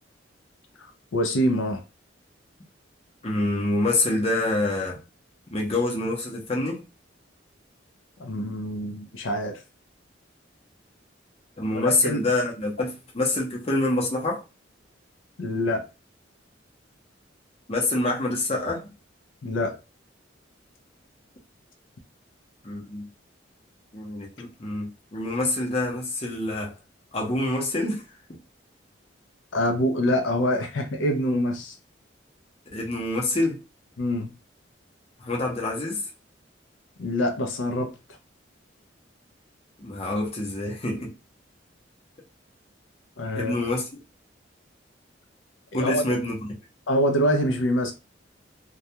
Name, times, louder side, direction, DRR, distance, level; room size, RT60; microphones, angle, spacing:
voice 1, 0.8-1.8 8.2-9.6 11.7-12.2 15.4-15.9 19.4-19.8 29.5-31.8 34.0-34.3 37.0-37.9 43.2-43.5 45.7-46.0 46.9-47.9, equal, 85° left, 0.5 m, -25 dB
voice 2, 3.2-5.0 5.5-6.8 11.6-14.4 17.7-18.9 22.6-23.1 23.9-26.7 27.1-28.0 28.3-28.4 32.7-33.6 35.2-36.0 39.8-41.1 43.4-43.8 45.7-46.4, left 2 dB, 30° left, 0.7 m, -26 dB
2.2 x 2.2 x 2.7 m
head